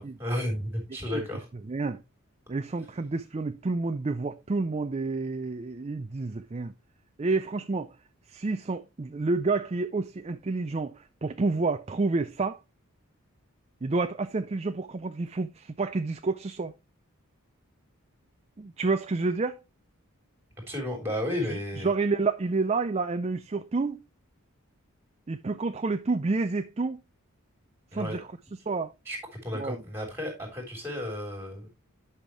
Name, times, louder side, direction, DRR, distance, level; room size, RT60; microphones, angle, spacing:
voice 1, 0.0-1.5 20.7-21.9 27.9-28.2 29.1-29.2 29.4-31.7, left 1 dB, 10° right, 3.3 m, -33 dB
voice 2, 1.7-2.0 2.5-6.7 7.2-8.0 8.3-12.6 13.8-16.7 18.6-19.6 21.4-24.0 25.3-27.0 27.9-28.3 28.7-28.9 29.6-29.8, right 3 dB, 30° right, 0.4 m, -29 dB
10.5 x 5.8 x 3.1 m
head